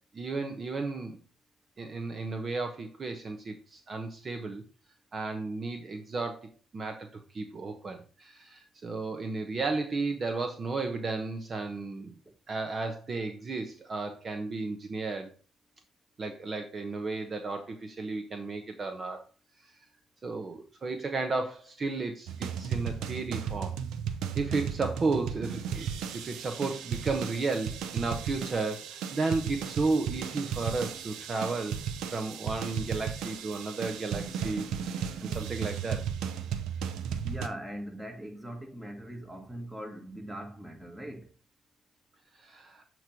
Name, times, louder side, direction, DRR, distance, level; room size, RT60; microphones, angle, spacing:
voice 1, 0.1-1.2 1.8-4.6 5.1-7.1 7.3-12.1 12.5-15.3 16.2-19.2 19.6-19.7 20.2-23.7 24.4-25.9 26.1-31.8 32.1-35.0 35.3-36.0 42.4-42.8, right 3 dB, 40° right, 1.0 m, -33 dB
sound 1, 22.3-37.5, right 8 dB, 85° right, 0.7 m, -35 dB
voice 2, 37.2-41.3, equal, 10° right, 1.7 m, -41 dB
7.9 x 3.1 x 5.1 m
cardioid pair, 90°, 0 cm